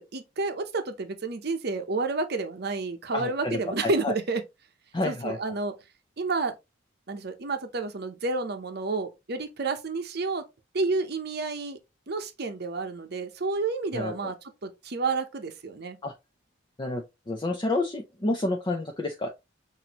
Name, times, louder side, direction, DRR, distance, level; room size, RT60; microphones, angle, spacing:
voice 1, 0.0-4.4 5.0-5.7 6.2-6.6 7.1-10.4 10.7-11.8 12.1-16.0, right 3 dB, 55° right, 0.7 m, -30 dB
voice 2, 3.1-4.1 4.9-5.4 13.9-14.3 16.0-16.1 16.8-19.3, left 2 dB, 25° left, 0.5 m, -29 dB
6.0 x 2.7 x 2.9 m
head